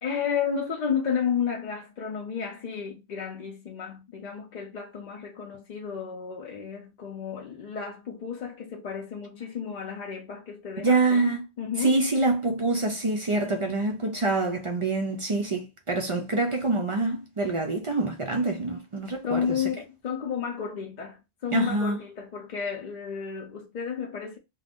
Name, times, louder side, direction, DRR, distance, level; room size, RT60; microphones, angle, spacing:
voice 1, 0.0-12.0 19.2-24.4, left 7 dB, 55° left, 0.6 m, -32 dB
voice 2, 10.8-11.4 11.8-19.6 21.5-22.0, right 2 dB, 55° right, 0.3 m, -26 dB
2.5 x 2.2 x 3.4 m
omnidirectional pair, 1.1 m